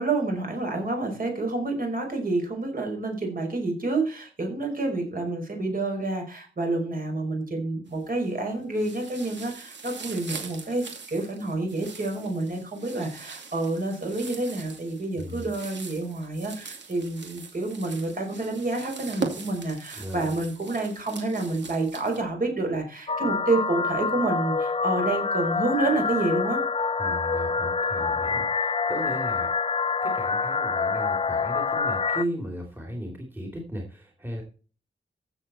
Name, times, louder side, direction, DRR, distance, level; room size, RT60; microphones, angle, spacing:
voice 1, 0.0-26.6, right 2 dB, 45° right, 2 dB, 5.3 m, -28 dB
sound 1, 7.9-8.4 8.7-22.2, right 4 dB, 60° right, 2.6 m, -41 dB
voice 2, 15.2-15.5 20.0-20.4 27.0-29.5 30.0-34.4, equal, 10° right, 0 dB, 2.9 m, -36 dB
sound 2, 23.1-32.2, left 4 dB, 30° left, 0.6 m, -26 dB
15.0 x 7.3 x 4.3 m, 0.37 s
wide cardioid pair, 150°, 21 cm